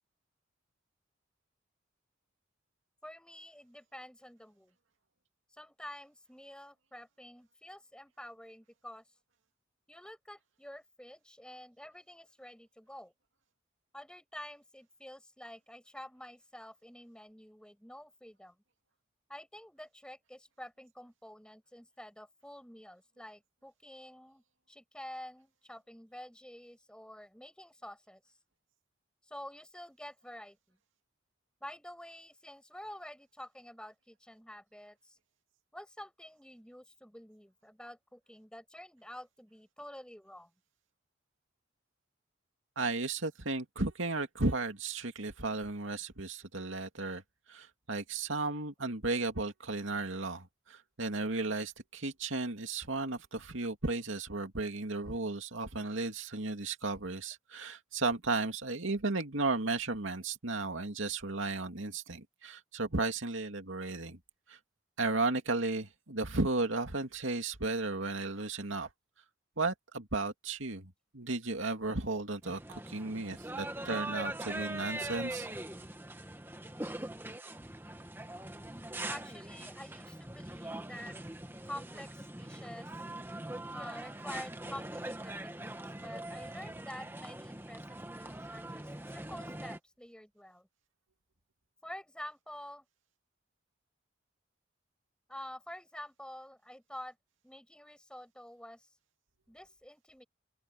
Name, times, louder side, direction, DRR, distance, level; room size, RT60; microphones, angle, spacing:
voice 1, 3.0-4.7 5.6-9.0 9.9-13.1 13.9-18.6 19.3-28.2 29.2-30.8 31.6-35.2 35.7-40.5 79.1-81.2 81.6-82.9 83.7-90.7 91.8-92.8 95.3-97.2 97.4-98.9 99.5-100.3, left 1 dB, 5° left, 7.9 m, -48 dB
voice 2, 42.8-47.2 47.5-64.2 64.5-64.6 65.0-68.9 69.6-75.5, right 3 dB, 80° right, 2.4 m, -34 dB
sound 1, 72.4-89.8, right 1 dB, 10° right, 1.4 m, -42 dB
open air
head